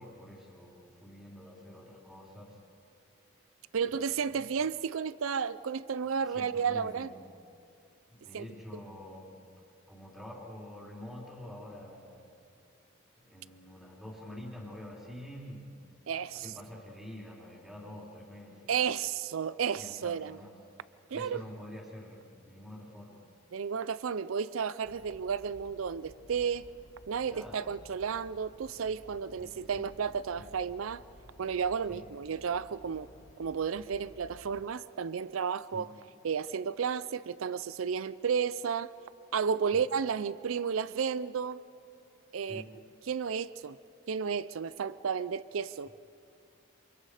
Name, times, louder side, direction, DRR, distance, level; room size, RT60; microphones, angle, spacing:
voice 1, 0.0-2.6 3.9-4.4 6.1-7.2 8.1-12.3 13.2-15.8 16.1-18.8 19.7-20.6 21.1-23.3 27.2-27.8 29.4-29.8 30.4-30.5 31.9-32.1 35.7-35.9 39.7-39.9 42.4-42.8, left 1 dB, ahead, -4 dB, 3.8 m, -47 dB
voice 2, 3.7-7.1 8.3-8.5 16.1-16.5 18.7-20.4 21.1-21.4 23.5-26.7 27.1-31.0 31.4-33.1 33.4-35.9 36.2-38.9 39.3-41.6 42.3-42.6 43.1-43.8 44.1-45.9, right 6 dB, 80° right, 17 dB, 0.5 m, -32 dB
sound 1, 24.8-34.7, left 1 dB, 70° left, 1.4 m, -56 dB
28.5 x 28.0 x 5.0 m, 2.4 s
head